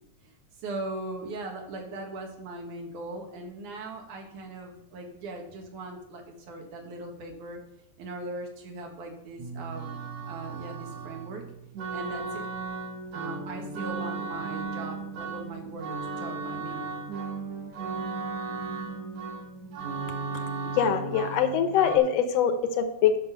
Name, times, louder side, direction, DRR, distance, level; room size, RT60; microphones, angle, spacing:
voice 1, 0.6-7.6 8.0-9.8 10.3-11.4 11.9-12.5 13.1-15.9 16.2-16.9, right 2 dB, 90° right, 2 dB, 3.0 m, -39 dB
sound 1, 9.4-22.0, right 4 dB, 65° right, 2.0 m, -35 dB
voice 2, 20.8-23.2, left 8 dB, 70° left, 8 dB, 1.8 m, -23 dB
10.5 x 6.0 x 5.5 m, 0.85 s
omnidirectional pair, 3.4 m